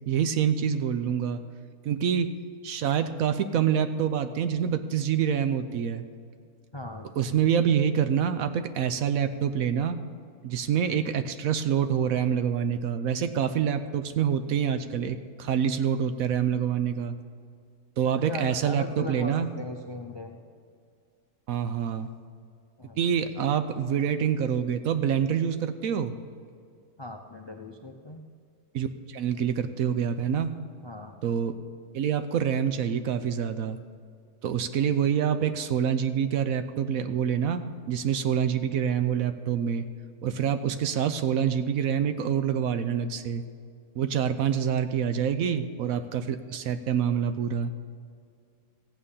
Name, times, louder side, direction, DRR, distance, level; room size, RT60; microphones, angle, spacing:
voice 1, 0.0-1.4 1.8-2.3 2.6-6.0 7.2-10.0 10.4-17.2 18.0-19.5 21.5-22.1 23.0-26.2 28.7-30.6 31.2-31.5 31.9-33.8 34.4-39.8 40.2-43.4 44.0-47.7, right 8 dB, 70° right, 10 dB, 1.0 m, -26 dB
voice 2, 6.7-7.4 18.2-20.4 22.8-23.0 27.0-28.2 30.8-31.1, left 1 dB, 35° left, 3 dB, 0.4 m, -38 dB
15.0 x 8.9 x 5.5 m, 2.2 s
omnidirectional pair, 1.7 m